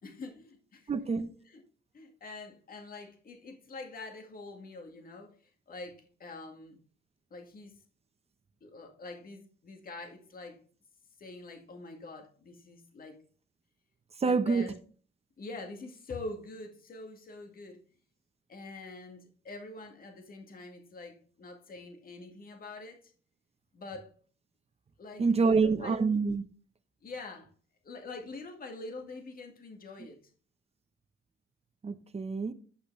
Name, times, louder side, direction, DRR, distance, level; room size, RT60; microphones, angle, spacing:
voice 1, 0.0-0.9 1.5-1.6 1.9-5.4 5.7-6.8 7.3-7.8 8.6-10.6 11.2-13.2 14.2-14.7 15.4-17.8 18.5-23.0 23.7-24.1 25.0-26.0 27.0-27.5 27.8-30.2, left 3 dB, 45° left, 2.0 m, -45 dB
voice 2, 0.9-1.3 14.2-14.7 25.2-26.4 31.8-32.5, right 4 dB, 30° right, 1.0 m, -26 dB
10.0 x 5.8 x 3.3 m
cardioid pair, 90°, 20 cm